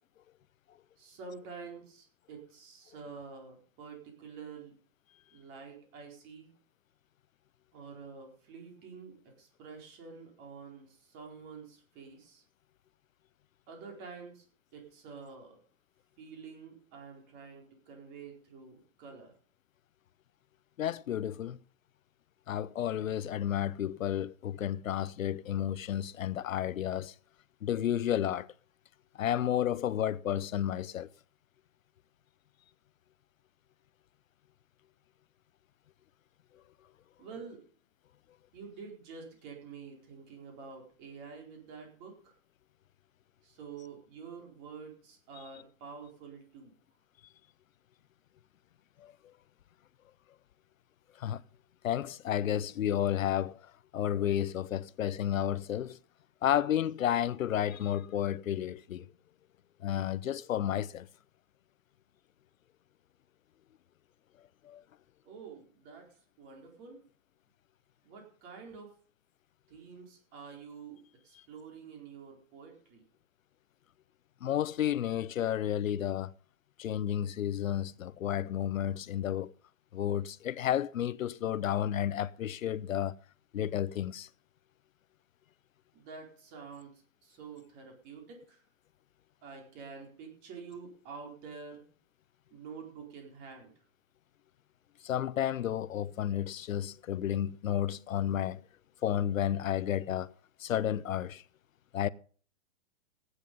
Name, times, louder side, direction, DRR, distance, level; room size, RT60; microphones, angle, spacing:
voice 1, 1.0-4.7 5.3-6.5 7.7-12.4 13.7-14.5 14.7-15.6 16.2-19.3 37.2-37.6 38.5-42.3 43.4-46.7 65.2-67.0 68.0-68.9 69.7-71.0 71.2-73.0 85.9-88.6 89.4-91.8 92.5-93.7, right 5 dB, 25° right, 4.4 m, -48 dB
voice 2, 20.8-21.6 22.5-27.1 27.6-28.5 29.2-31.1 49.0-49.1 51.2-51.4 51.8-53.6 53.9-56.0 56.4-59.1 59.8-61.1 64.6-64.8 74.4-76.3 76.8-79.5 79.9-83.2 83.5-84.3 95.0-98.6 99.0-100.3 100.6-101.4 101.9-102.1, left 10 dB, 85° left, 0.8 m, -31 dB
16.0 x 10.0 x 5.4 m
hypercardioid pair, 160°, 39 cm